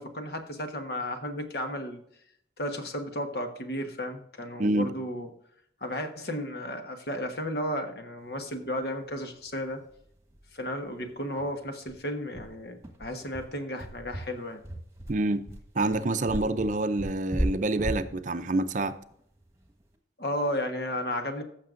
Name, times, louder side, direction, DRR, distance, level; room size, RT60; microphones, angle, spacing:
voice 1, 0.0-2.0 2.6-5.3 5.8-9.8 10.5-14.6 20.2-21.4, left 1 dB, 60° left, 6 dB, 1.2 m, -33 dB
voice 2, 4.6-4.9 15.1-15.4 15.7-18.9, right 2 dB, 45° right, 10 dB, 0.5 m, -27 dB
sound 1, 9.5-9.6 9.9-10.0 10.3-10.5 10.8-10.9 11.4-19.8, equal, 15° right, 1.4 m, -36 dB
15.5 x 6.6 x 2.5 m, 0.70 s
head